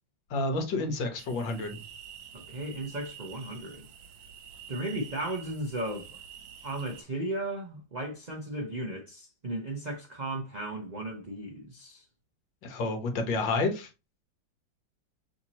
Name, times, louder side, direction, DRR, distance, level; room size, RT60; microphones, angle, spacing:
voice 1, 0.3-1.8 12.6-13.9, left 3 dB, 75° left, 1.7 m, -29 dB
sound 1, 1.2-7.0, right 7 dB, 80° right, 1.5 m, -48 dB
voice 2, 2.3-3.9 4.7-6.2 6.6-12.0, right 1 dB, 55° right, 0.4 m, -35 dB
5.8 x 2.9 x 2.8 m
omnidirectional pair, 2.0 m